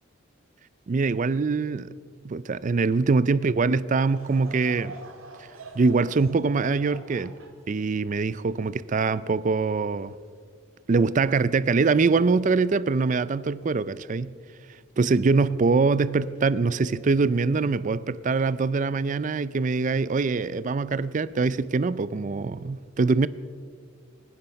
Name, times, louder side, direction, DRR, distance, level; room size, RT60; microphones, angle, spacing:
voice 1, 0.9-1.9 2.2-4.9 5.7-7.4 7.7-10.1 10.9-14.4 15.0-23.3, right 4 dB, 40° right, 0.4 m, -23 dB
Laughter / Crowd, 4.0-9.5 10.1-10.2 11.0-11.2, right 3 dB, 90° right, 2.0 m, -46 dB
25.0 x 10.0 x 5.2 m
head